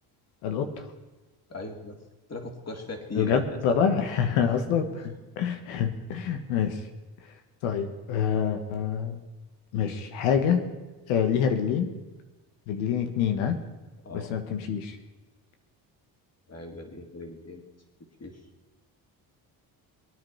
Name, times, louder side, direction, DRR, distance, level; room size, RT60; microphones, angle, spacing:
voice 1, 0.4-0.9 3.1-4.9 5.4-6.9 7.6-9.3 9.7-10.6 11.1-11.9 12.7-13.6 14.1-15.0, left 7 dB, 85° left, 7 dB, 1.7 m, -26 dB
voice 2, 1.5-2.0 2.3-3.8 4.4-4.6 14.0-14.4 16.5-17.7 18.2-18.4, left 2 dB, 30° left, 3 dB, 3.4 m, -39 dB
22.5 x 9.5 x 5.7 m, 1.2 s
supercardioid pair, 65°, 48 cm